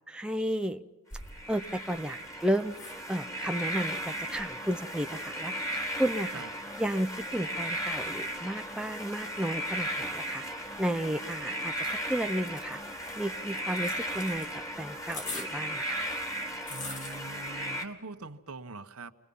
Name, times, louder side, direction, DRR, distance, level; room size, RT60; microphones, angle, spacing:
voice 1, 0.1-0.8 1.5-2.7 3.1-5.5 6.0-6.4 6.8-10.5 10.8-11.7 12.1-12.8 13.2-14.5 14.8-16.1, right 1 dB, 5° right, 5 dB, 0.7 m, -32 dB
sound 1, 1.1-17.7, left 3 dB, 35° left, 2.4 m, -49 dB
sound 2, 1.3-17.9, equal, 15° left, 2.2 m, -36 dB
voice 2, 16.7-19.1, right 3 dB, 80° right, 8 dB, 1.3 m, -43 dB
28.5 x 22.0 x 5.5 m, 1.1 s
head